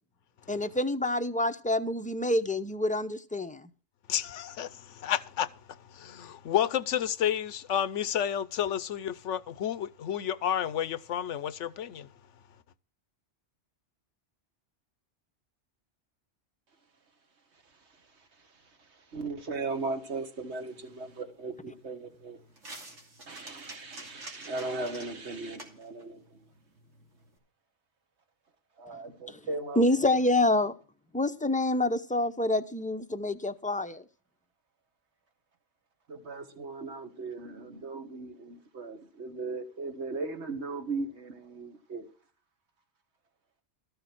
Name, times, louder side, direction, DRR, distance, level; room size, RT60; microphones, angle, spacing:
voice 1, 0.5-3.7 29.3-29.4 29.8-30.8 31.1-34.0, left 1 dB, 10° left, 0.5 m, -27 dB
voice 2, 4.1-12.1, left 10 dB, 90° left, 1.1 m, -31 dB
voice 3, 18.8-22.4 23.3-26.5 28.8-29.8 36.1-42.1, right 3 dB, 70° right, 1.9 m, -37 dB
sound 1, 20.5-27.4, right 2 dB, 90° right, 3.2 m, -50 dB
13.5 x 6.9 x 6.0 m
omnidirectional pair, 1.2 m